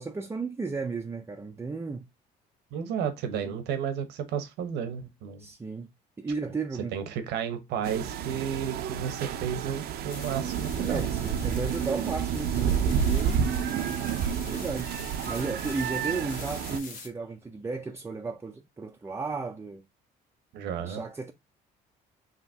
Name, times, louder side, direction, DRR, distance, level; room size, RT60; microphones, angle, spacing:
voice 1, 0.0-2.0 3.4-3.6 5.4-5.9 6.2-7.0 10.8-13.5 14.5-14.9 15.3-19.8 20.8-21.3, right 4 dB, 15° right, 0.5 m, -34 dB
voice 2, 2.7-5.4 6.9-11.1 20.5-21.0, right 8 dB, 85° right, 1.0 m, -32 dB
sound 1, 7.8-16.8, right 8 dB, 70° right, 0.6 m, -30 dB
sound 2, 10.1-17.1, left 5 dB, 55° left, 1.2 m, -45 dB
5.2 x 2.9 x 2.7 m
cardioid pair, 110°, 17 cm